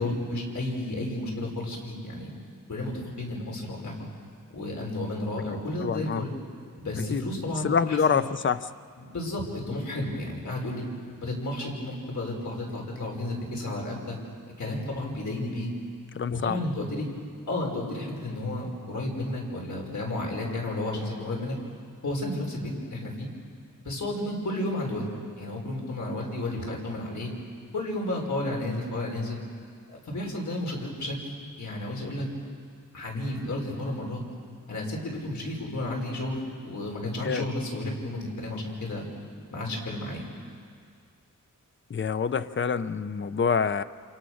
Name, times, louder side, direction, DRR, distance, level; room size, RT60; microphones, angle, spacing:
voice 1, 0.0-2.3 2.7-3.9 4.5-6.3 6.8-8.2 9.0-10.8 11.2-14.2 14.6-15.7 16.3-17.1 17.5-21.6 22.0-23.3 23.8-25.1 25.3-27.3 27.7-29.4 29.9-31.2 31.6-32.3 32.9-34.2 34.7-39.1 39.5-40.3, left 1 dB, 60° left, -1 dB, 5.6 m, -32 dB
voice 2, 5.8-6.2 7.0-7.2 7.6-8.7 16.1-16.6 37.2-37.5 41.9-43.8, left 6 dB, 35° left, 13 dB, 0.6 m, -26 dB
29.0 x 27.0 x 6.4 m, 2.2 s
wide cardioid pair, 140°, 33 cm